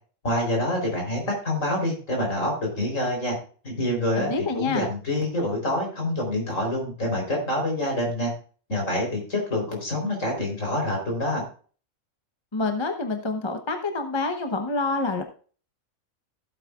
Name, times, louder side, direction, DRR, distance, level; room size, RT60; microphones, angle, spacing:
voice 1, 0.2-3.4 3.6-8.3 8.7-11.4, left 1 dB, 65° left, 0 dB, 4.3 m, -26 dB
voice 2, 4.2-4.9 12.5-15.2, left 3 dB, 25° left, 5 dB, 0.8 m, -27 dB
15.5 x 8.2 x 2.4 m, 0.40 s
omnidirectional pair, 1.5 m